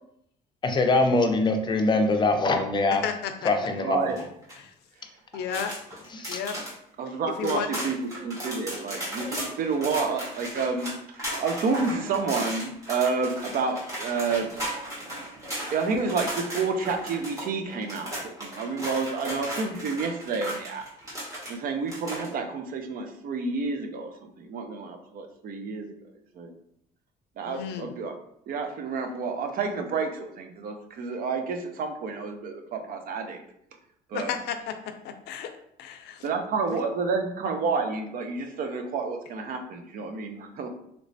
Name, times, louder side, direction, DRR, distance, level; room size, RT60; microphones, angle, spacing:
voice 1, 0.6-3.0 3.4-4.1 6.1-6.4, left 2 dB, 25° left, 6 dB, 0.5 m, -23 dB
voice 2, 2.9-3.5 4.5-4.7 5.3-5.8 6.3-6.6 7.3-7.8 27.5-27.9 34.1-35.5 35.8-36.3 36.7-36.8, left 8 dB, 80° left, 7 dB, 0.4 m, -33 dB
voice 3, 3.8-4.2 7.0-14.5 15.7-20.8 21.5-25.9 26.3-26.5 27.4-28.1 28.5-33.4 34.1-34.3 36.2-40.7, right 4 dB, 55° right, 5 dB, 0.6 m, -29 dB
sound 1, 4.1-4.6 5.3-6.7 7.1-7.2 7.4-21.5 21.9-22.3, right 1 dB, 20° right, 1.4 m, -36 dB
3.2 x 3.0 x 2.6 m, 0.73 s
cardioid pair, 110°, 17 cm